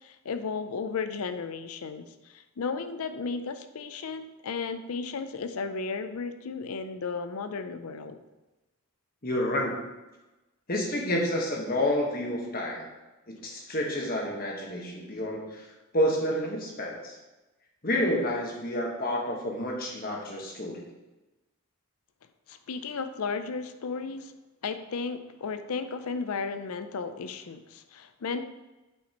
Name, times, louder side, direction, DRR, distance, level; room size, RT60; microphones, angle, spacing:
voice 1, 0.0-8.2 22.5-24.3 24.6-28.4, left 5 dB, 85° left, 9 dB, 0.5 m, -34 dB
voice 2, 9.2-9.8 10.7-12.9 13.3-15.7 15.9-17.2 17.8-20.9, left 1 dB, 40° left, -1 dB, 1.3 m, -29 dB
8.3 x 5.2 x 3.0 m, 1.1 s
head